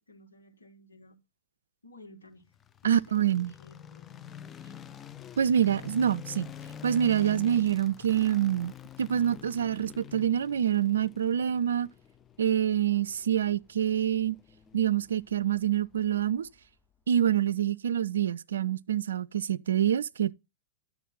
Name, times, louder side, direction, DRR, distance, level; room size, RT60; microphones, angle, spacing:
voice 1, 0.1-1.2 1.8-2.5 2.8-4.3, left 2 dB, 80° left, 1.9 m, -54 dB
sound 1, 2.5-16.7, left 9 dB, 25° left, 0.6 m, -47 dB
voice 2, 2.8-3.5 5.4-6.5 6.8-8.7 9.0-11.9 12.4-14.4 14.7-16.5 17.1-20.3, right 10 dB, 70° right, 0.4 m, -26 dB
11.0 x 7.2 x 3.9 m
figure-of-eight pair, 100°, 0 cm